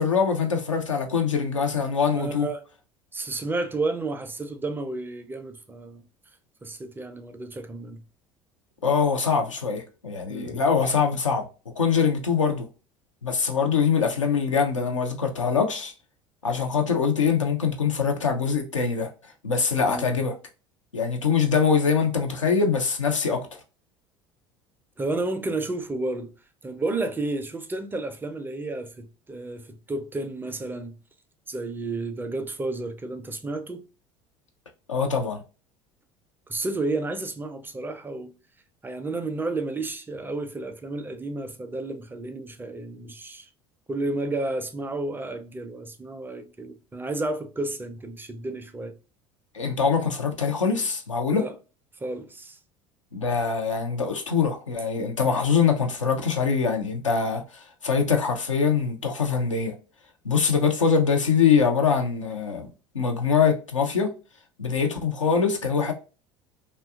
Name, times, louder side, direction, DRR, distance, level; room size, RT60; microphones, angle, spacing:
voice 1, 0.0-2.5 8.8-11.4 11.8-12.7 13.2-15.9 16.4-19.1 19.4-20.4 20.9-23.5 34.9-35.4 49.5-51.4 53.1-57.4 57.8-59.7 60.2-62.7 62.9-64.1 64.6-65.9, left 6 dB, 85° left, 0.5 m, -23 dB
voice 2, 2.1-2.6 3.1-6.0 6.6-8.0 10.3-10.6 19.8-20.2 25.0-26.3 26.6-31.0 31.5-33.8 36.5-38.3 38.8-43.5 43.9-48.9 51.3-51.5 52.0-52.6, right 2 dB, 15° right, 0.4 m, -31 dB
2.7 x 2.2 x 2.3 m
figure-of-eight pair, 65°, 16 cm